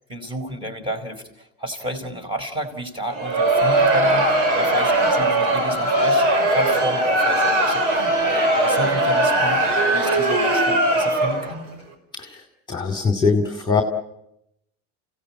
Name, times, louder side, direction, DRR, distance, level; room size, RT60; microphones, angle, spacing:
voice 1, 0.1-11.7, right 1 dB, 15° right, 6 dB, 4.9 m, -31 dB
Crowd, 3.1-11.6, right 1 dB, 75° right, 5.2 m, -19 dB
voice 2, 12.7-13.8, left 4 dB, 10° left, 5 dB, 2.6 m, -21 dB
29.0 x 17.5 x 8.6 m, 0.84 s
supercardioid pair, 130°, 38 cm